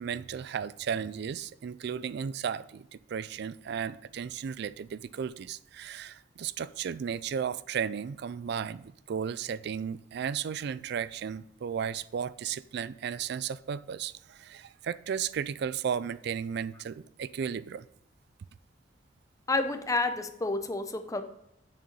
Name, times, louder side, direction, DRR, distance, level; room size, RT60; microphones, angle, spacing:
voice 1, 0.0-17.9, right 7 dB, 60° right, 0.3 m, -34 dB
voice 2, 19.5-21.2, left 2 dB, 20° left, 0.7 m, -29 dB
6.9 x 6.5 x 5.2 m
head